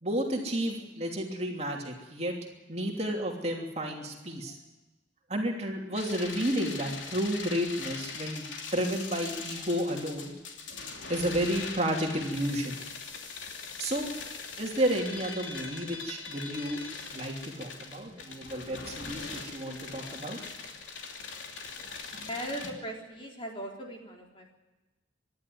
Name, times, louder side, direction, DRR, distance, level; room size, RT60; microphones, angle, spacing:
voice 1, 0.0-2.3 2.7-4.6 5.3-8.5 8.7-10.3 11.1-12.8 13.8-14.1 14.6-16.8 17.1-20.5 21.9-22.3, equal, 35° right, 1 dB, 3.0 m, -31 dB
sound 1, 5.9-22.7, left 4 dB, 85° left, 3.0 m, -41 dB
voice 2, 22.3-24.5, equal, 25° left, 0 dB, 3.7 m, -38 dB
26.0 x 11.5 x 9.4 m, 1.1 s
head